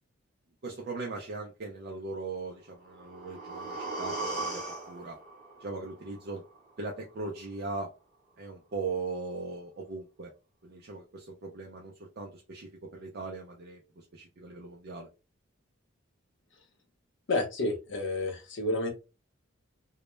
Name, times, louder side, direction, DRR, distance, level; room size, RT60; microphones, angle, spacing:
voice 1, 0.6-4.6 4.9-5.2 5.6-6.4 6.8-7.9 8.4-10.3 10.6-15.1, right 3 dB, 50° right, 0 dB, 0.4 m, -39 dB
sound 1, 2.7-6.7 7.1-7.2, right 2 dB, ahead, 0.9 m, -39 dB
voice 2, 17.3-18.9, left 2 dB, 55° left, 3 dB, 0.7 m, -30 dB
2.2 x 2.0 x 3.0 m, 0.29 s
head